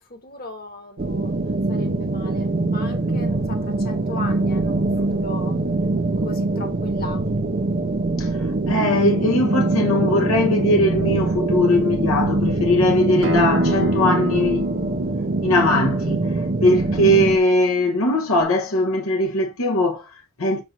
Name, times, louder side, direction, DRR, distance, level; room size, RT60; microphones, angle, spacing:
voice 1, 0.0-5.6 6.2-7.2, left 3 dB, 45° left, 1.5 m, -38 dB
sound 1, 1.0-17.4, right 2 dB, 40° right, 0.6 m, -23 dB
voice 2, 8.2-14.7 15.4-20.6, left 1 dB, 75° left, 1.1 m, -20 dB
Acoustic guitar, 13.2-18.4, equal, 60° right, 1.1 m, -29 dB
7.3 x 2.6 x 5.8 m
head